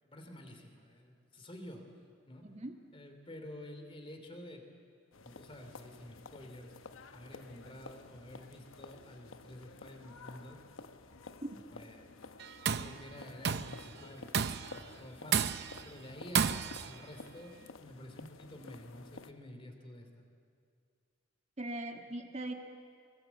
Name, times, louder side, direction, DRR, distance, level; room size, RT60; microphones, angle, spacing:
voice 1, 0.0-1.8 2.2-2.4 2.9-4.6 5.2-6.7 7.1-10.6 11.7-12.1 12.8-14.3 14.7-15.5 15.8-20.3, left 1 dB, 30° left, 5 dB, 3.0 m, -50 dB
sound 1, 5.1-19.3, left 3 dB, 90° left, 1.0 m, -52 dB
Tools, 12.4-13.0 13.4-13.8 14.3-14.8 15.3-15.8 16.4-16.9, right 7 dB, 55° right, 0.7 m, -31 dB
voice 2, 21.6-22.5, right 1 dB, 35° right, 3 dB, 1.6 m, -40 dB
24.0 x 22.0 x 8.2 m, 2.2 s
head